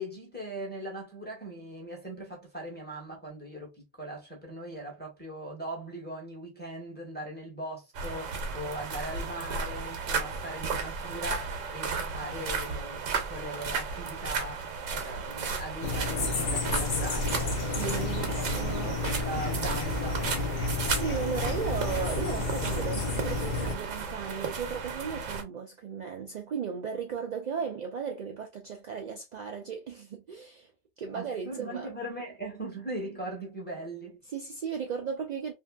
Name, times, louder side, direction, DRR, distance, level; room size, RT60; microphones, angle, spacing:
voice 1, 0.0-14.6 14.9-18.5 18.9-20.2 31.1-34.2, right 1 dB, 10° left, 0.9 m, -40 dB
sound 1, 7.9-25.4, right 5 dB, 90° right, 1.1 m, -34 dB
sound 2, 15.8-23.8, left 3 dB, 55° left, 0.6 m, -31 dB
voice 2, 17.8-19.0 20.6-30.7 31.0-31.9 34.3-35.5, right 6 dB, 75° right, 0.4 m, -36 dB
2.7 x 2.7 x 2.2 m
omnidirectional pair, 1.3 m